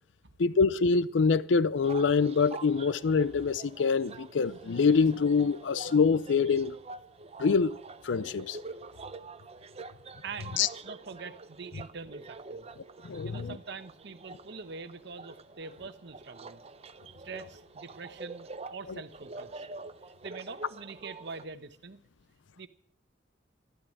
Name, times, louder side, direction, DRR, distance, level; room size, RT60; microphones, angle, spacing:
voice 1, 0.4-6.7 7.4-7.8 8.0-8.6 10.6-10.7 13.0-13.6, left 5 dB, 80° left, 0.5 m, -25 dB
sound 1, 1.8-21.5, right 3 dB, 35° right, 0.7 m, -46 dB
voice 2, 10.2-12.7 13.2-16.6 17.2-19.7 20.2-22.0 22.6-22.7, right 4 dB, 65° right, 1.1 m, -44 dB
13.5 x 12.0 x 7.6 m
head